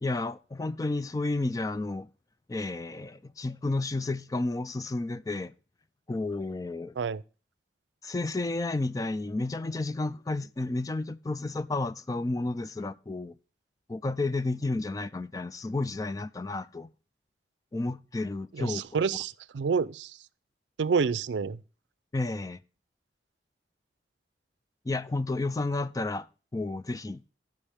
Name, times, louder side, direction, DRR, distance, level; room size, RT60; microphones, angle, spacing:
voice 1, 0.0-2.1 2.5-5.5 6.1-7.0 8.0-13.3 13.9-16.9 17.7-18.8 22.1-22.6 24.9-26.3 26.5-27.2, left 2 dB, 20° left, 0.4 m, -31 dB
voice 2, 18.5-20.1 20.8-21.6, right 5 dB, 90° right, 0.4 m, -28 dB
15.5 x 5.3 x 3.4 m
head